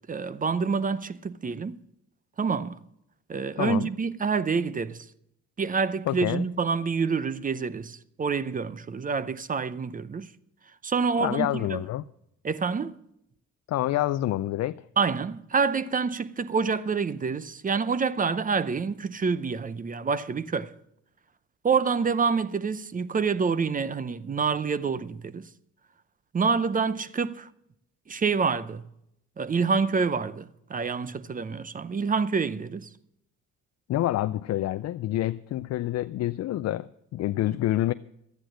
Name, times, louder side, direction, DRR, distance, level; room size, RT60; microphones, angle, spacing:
voice 1, 0.1-1.8 2.4-2.8 3.3-5.1 5.6-10.3 10.8-11.8 12.4-13.0 15.0-20.7 21.6-25.5 26.3-27.5 28.1-28.8 29.4-32.9, right 5 dB, 25° right, 0.6 m, -27 dB
voice 2, 3.6-3.9 6.1-6.4 11.2-12.0 13.7-14.8 33.9-37.9, left 14 dB, 60° left, 0.4 m, -27 dB
13.0 x 10.5 x 6.2 m
cardioid pair, 90°, 30 cm